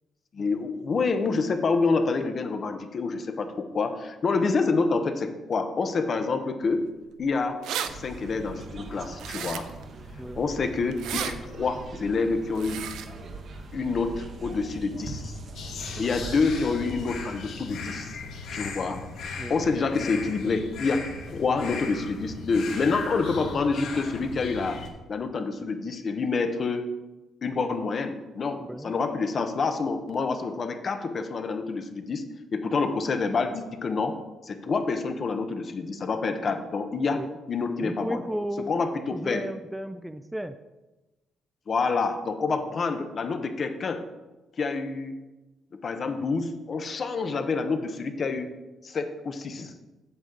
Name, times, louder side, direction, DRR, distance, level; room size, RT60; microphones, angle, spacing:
voice 1, 0.3-6.9 7.2-7.6 7.9-9.7 10.3-12.9 13.7-15.4 16.0-18.2 18.5-19.0 19.5-24.8 25.1-26.9 27.4-32.3 32.5-34.2 34.4-37.2 37.5-38.2 38.7-39.4 41.7-44.0 44.6-45.2 45.7-48.5 48.8-49.8, left 4 dB, 45° left, 7 dB, 0.9 m, -27 dB
sound 1, 7.2-7.3 7.4-7.9 9.2-9.8 10.9-11.3 12.5-13.1, right 9 dB, 85° right, 0.5 m, -33 dB
sound 2, 7.9-17.2, right 2 dB, 55° right, 1.2 m, -41 dB
sound 3, 15.5-24.9, left 4 dB, 80° left, 1.3 m, -37 dB
voice 2, 37.8-38.7 39.1-40.6, right 1 dB, 5° right, 10 dB, 0.4 m, -34 dB
8.1 x 7.4 x 3.8 m, 1.1 s
cardioid pair, 90°, 0 cm